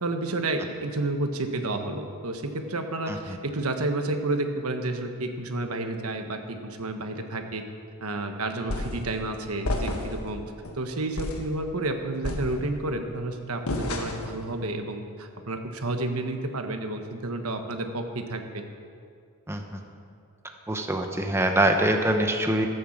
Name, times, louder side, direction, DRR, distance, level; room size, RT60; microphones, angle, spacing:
voice 1, 0.0-7.6 8.0-10.4 10.7-18.6, right 2 dB, 75° right, 5 dB, 1.3 m, -30 dB
sound 1, 8.7-9.1 9.6-10.3 10.6-10.8 11.2-11.5 12.2-12.9 13.7-14.4, left 1 dB, 75° left, 1.6 m, -30 dB
voice 2, 20.7-22.7, right 1 dB, 10° right, 3 dB, 0.9 m, -23 dB
14.5 x 9.4 x 7.3 m, 2.3 s
head